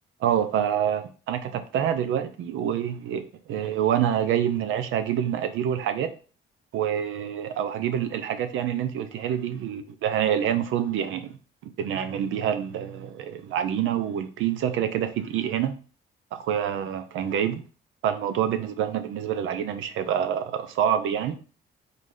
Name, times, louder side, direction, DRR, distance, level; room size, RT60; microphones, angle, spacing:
voice 1, 0.2-6.1 6.7-15.8 16.3-17.6 18.0-21.4, right 9 dB, 85° right, 0.6 m, -27 dB
4.1 x 3.1 x 3.8 m
cardioid pair, 90°, 20 cm